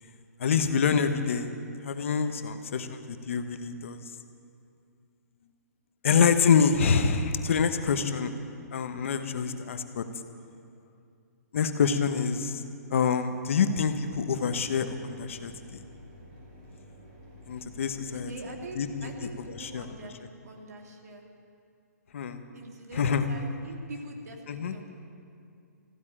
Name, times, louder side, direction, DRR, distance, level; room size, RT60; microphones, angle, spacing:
voice 1, 0.4-1.5 1.8-4.0 6.0-8.3 8.7-10.0 11.5-12.6 12.9-15.8 17.5-18.3 18.8-19.1 19.5-19.9 22.1-22.4 23.0-23.2 24.5-24.7, left 6 dB, 50° left, 8 dB, 1.0 m, -26 dB
voice 2, 2.5-2.9 18.1-21.2 22.5-24.9, right 2 dB, 70° right, 2 dB, 2.6 m, -44 dB
Mechanisms, 14.5-19.9, left 1 dB, 30° right, 4.8 m, -50 dB
15.0 x 8.7 x 10.0 m, 2.4 s
hypercardioid pair, 175°, 9 cm